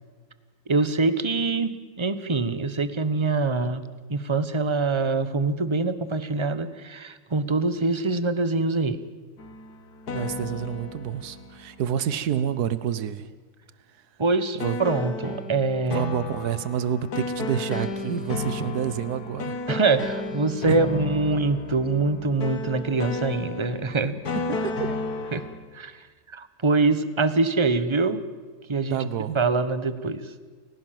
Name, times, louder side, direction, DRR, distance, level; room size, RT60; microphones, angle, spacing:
voice 1, 0.7-3.8 4.1-9.0 14.2-16.0 19.7-24.2 25.3-25.4 25.7-26.0 26.3-28.2 28.7-29.0 29.3-30.2, right 3 dB, 20° right, 13 dB, 1.1 m, -24 dB
sound 1, 9.4-12.3 14.6-25.7, left 3 dB, 85° left, 2.3 m, -33 dB
voice 2, 10.1-13.3 14.6-14.8 15.9-19.6 20.7-20.8 24.5-25.0 28.9-29.4, right 9 dB, 85° right, 15 dB, 1.5 m, -28 dB
29.5 x 17.0 x 7.7 m, 1.5 s
omnidirectional pair, 1.6 m